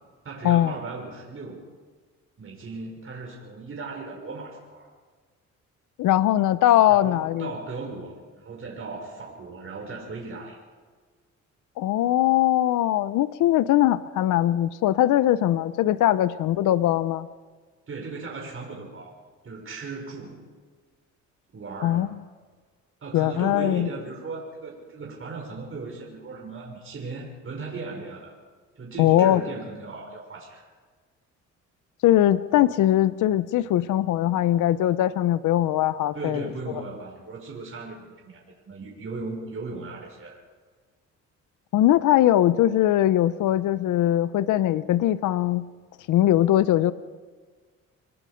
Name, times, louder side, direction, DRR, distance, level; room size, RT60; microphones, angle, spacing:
voice 1, 0.2-1.6 2.4-4.9 6.9-10.6 17.9-19.2 19.4-20.4 21.5-22.1 23.0-28.3 28.7-30.6 36.1-40.4, right 3 dB, 45° right, -1 dB, 6.0 m, -37 dB
voice 2, 6.0-7.5 11.8-17.3 21.8-22.1 23.1-23.9 29.0-29.4 32.0-36.5 41.7-45.6 46.1-46.9, left 13 dB, 80° left, 14 dB, 0.8 m, -21 dB
28.0 x 20.0 x 5.2 m, 1.5 s
cardioid pair, 90°, 30 cm